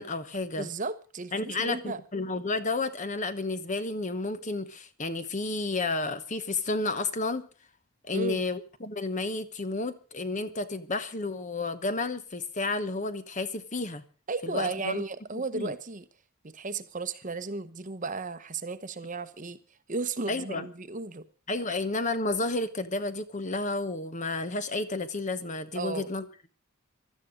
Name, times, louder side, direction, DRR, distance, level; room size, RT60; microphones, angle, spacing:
voice 1, 0.0-0.7 1.3-7.4 8.0-14.0 14.4-15.0 15.5-15.7 20.3-20.7 21.5-26.2, left 3 dB, 35° left, 1.0 m, -31 dB
voice 2, 0.6-2.0 8.1-8.4 14.3-16.0 16.4-19.6 19.9-21.3 25.7-26.1, right 3 dB, 35° right, 1.0 m, -34 dB
16.5 x 13.0 x 5.1 m
head